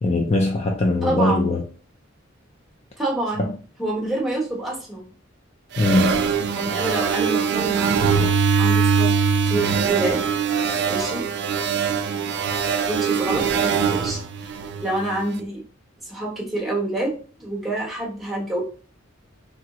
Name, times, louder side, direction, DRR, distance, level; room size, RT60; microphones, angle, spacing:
voice 1, 0.0-1.6 5.8-6.2, left 2 dB, 35° left, 0.4 m, -20 dB
voice 2, 1.0-1.5 3.0-3.5 3.8-5.1 6.5-10.2 10.9-11.2 12.9-14.5 14.8-15.6 16.0-18.6, right 1 dB, ahead, 0.9 m, -27 dB
sound 1, 5.8-15.2, right 6 dB, 60° right, 0.4 m, -22 dB
3.5 x 2.1 x 2.9 m
head